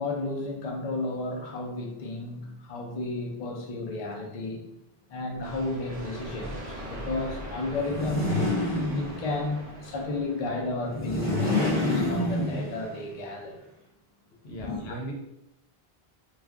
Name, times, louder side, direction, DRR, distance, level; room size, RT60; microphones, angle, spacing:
voice 1, 0.0-4.6 5.1-8.5 8.9-13.6 14.6-14.9, left 2 dB, 45° left, 0 dB, 0.6 m, -33 dB
sound 1, 5.4-11.1, equal, 40° right, 0.7 m, -41 dB
sound 2, 7.8-9.5 10.8-13.0, left 2 dB, 10° right, 0.9 m, -27 dB
voice 2, 14.3-15.1, right 1 dB, 85° left, -1 dB, 0.9 m, -38 dB
2.4 x 2.3 x 3.5 m, 0.84 s
omnidirectional pair, 1.0 m